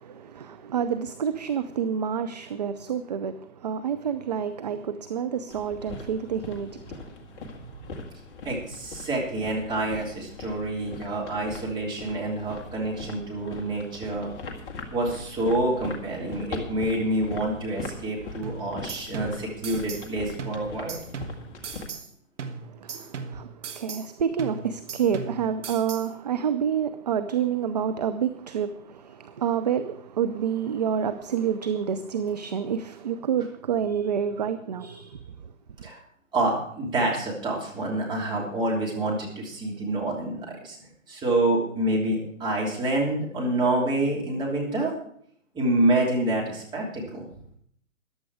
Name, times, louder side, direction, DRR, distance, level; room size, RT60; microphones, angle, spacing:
voice 1, 0.0-7.0 22.8-23.5 23.8-35.2, right 8 dB, 35° right, 0.5 m, -28 dB
sound 1, 5.5-21.9, left 3 dB, 20° left, 1.8 m, -41 dB
voice 2, 8.4-14.3 14.9-21.0 22.9-23.0 35.8-36.0 36.3-44.9 45.5-47.3, right 1 dB, 10° right, 3.1 m, -27 dB
sound 2, 18.4-20.1 20.4-22.1 22.4-24.1 24.4-26.1, right 5 dB, 65° right, 1.6 m, -38 dB
14.5 x 11.0 x 4.8 m
hypercardioid pair, 145°, 40 cm